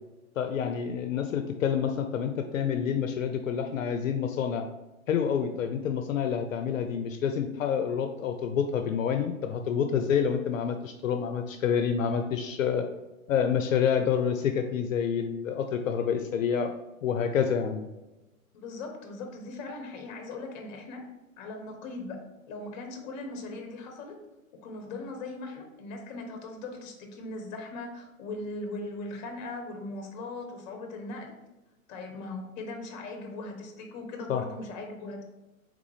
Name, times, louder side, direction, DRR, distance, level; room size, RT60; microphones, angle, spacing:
voice 1, 0.4-4.7 5.1-12.8 13.3-16.7 17.0-17.9 34.3-34.4, left 7 dB, 70° left, 7 dB, 0.5 m, -28 dB
voice 2, 18.5-21.0 21.4-22.2 22.5-24.2 24.6-31.3 31.9-35.2, left 2 dB, 30° left, 4 dB, 0.8 m, -39 dB
3.7 x 3.6 x 3.2 m, 1.0 s
hypercardioid pair, 125°, 42 cm